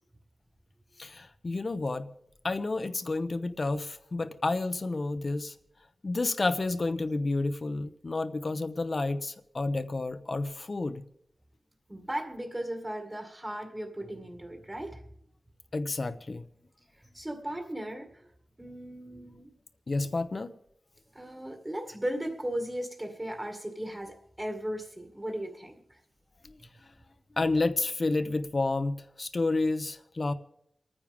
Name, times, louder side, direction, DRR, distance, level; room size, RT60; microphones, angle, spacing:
voice 1, 1.0-2.1 2.4-5.5 6.0-11.0 15.7-16.4 19.9-20.5 26.4-26.6 27.4-30.3, left 3 dB, 55° left, 1.0 m, -30 dB
voice 2, 11.9-15.0 17.1-18.3 18.6-19.5 21.1-26.0, right 1 dB, 25° right, 2.1 m, -36 dB
29.0 x 9.9 x 3.6 m
cardioid pair, 55°, 0 cm